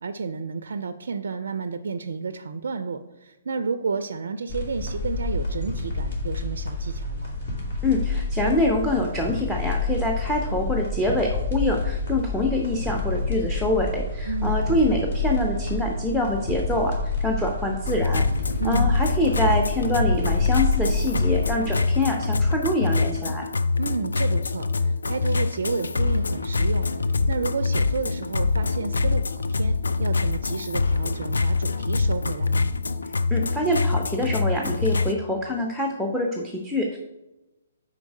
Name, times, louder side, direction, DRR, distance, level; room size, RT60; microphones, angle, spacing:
voice 1, 0.0-7.4 14.3-14.9 18.6-18.9 23.8-32.7, right 4 dB, 65° right, 11 dB, 0.3 m, -31 dB
sound 1, 4.5-21.5, left 3 dB, 55° left, 2.4 m, -28 dB
voice 2, 7.8-18.2 18.6-23.4 33.3-37.0, left 1 dB, ahead, 1 dB, 0.6 m, -25 dB
sound 2, 17.9-35.1, left 4 dB, 75° left, 0.4 m, -24 dB
4.9 x 4.6 x 5.3 m, 1.0 s
figure-of-eight pair, 130°, 0 cm